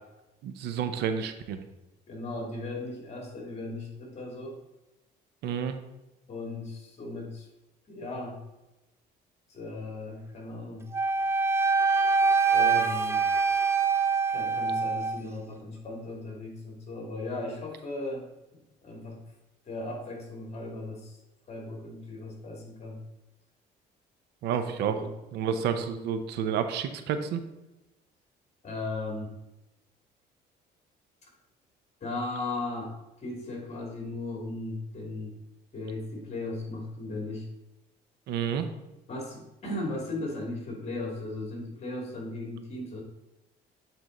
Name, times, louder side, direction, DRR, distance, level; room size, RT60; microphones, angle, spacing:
voice 1, 0.4-1.6 5.4-5.8 24.4-25.0 25.3-27.4 38.3-38.7, right 7 dB, 80° right, 9 dB, 0.7 m, -30 dB
voice 2, 2.1-4.6 6.3-7.5 7.9-8.4 9.5-10.9 12.5-13.3 14.3-18.3 18.5-19.2 19.7-21.2 21.5-23.0 24.6-25.1 28.6-29.3 32.0-32.9 33.2-35.3 35.7-37.5 39.1-43.0, left 2 dB, 40° left, 0 dB, 2.5 m, -37 dB
Wind instrument woodwind instrument, 10.9-15.2, right 4 dB, 15° right, 0.4 m, -24 dB
8.4 x 4.4 x 3.9 m, 0.99 s
cardioid pair, 110°, 17 cm